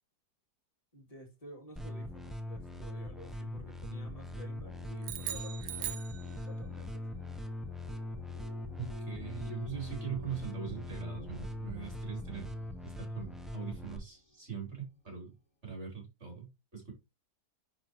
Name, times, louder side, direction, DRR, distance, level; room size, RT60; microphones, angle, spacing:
voice 1, 0.9-6.0 6.4-7.0, left 1 dB, 20° left, 2.5 m, -52 dB
sound 1, 1.8-14.0, left 1 dB, ahead, 0.6 m, -41 dB
sound 2, 1.9-15.4, right 1 dB, 45° left, 2.1 m, -54 dB
sound 3, 5.0-6.8, right 13 dB, 80° right, 1.3 m, -40 dB
voice 2, 8.8-12.5 12.8-15.3 15.6-16.9, right 7 dB, 40° right, 3.9 m, -42 dB
10.5 x 4.5 x 3.0 m
omnidirectional pair, 1.8 m